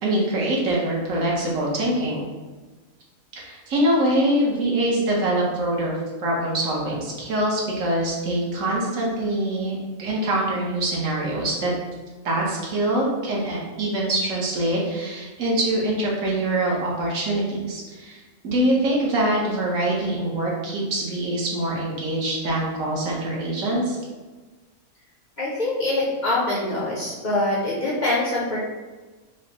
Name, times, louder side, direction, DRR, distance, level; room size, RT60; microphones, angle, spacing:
voice 1, 0.0-2.2 3.3-11.7 12.2-24.0, right 1 dB, 65° right, -3 dB, 1.2 m, -24 dB
voice 2, 25.4-28.6, left 2 dB, 50° left, -6 dB, 0.5 m, -24 dB
4.7 x 2.0 x 2.8 m, 1.3 s
omnidirectional pair, 1.5 m